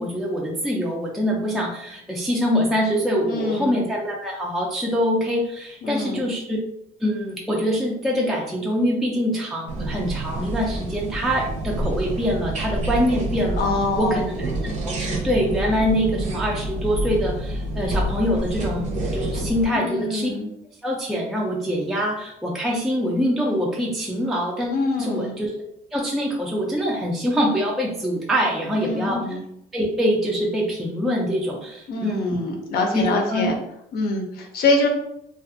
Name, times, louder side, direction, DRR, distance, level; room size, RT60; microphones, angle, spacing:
voice 1, 0.0-6.6 7.0-13.6 14.0-20.3 20.8-25.5 25.9-29.4 29.7-32.4 32.9-33.5, equal, ahead, -3 dB, 0.4 m, -24 dB
voice 2, 3.3-3.8 5.8-6.3 13.6-14.3 19.7-20.5 24.7-25.4 28.8-29.4 31.9-33.6 33.9-34.9, left 3 dB, 65° left, 2 dB, 0.5 m, -25 dB
sound 1, 9.7-19.6, right 2 dB, 45° right, 0.7 m, -28 dB
2.4 x 2.4 x 2.5 m, 0.79 s
cardioid pair, 110°, 17 cm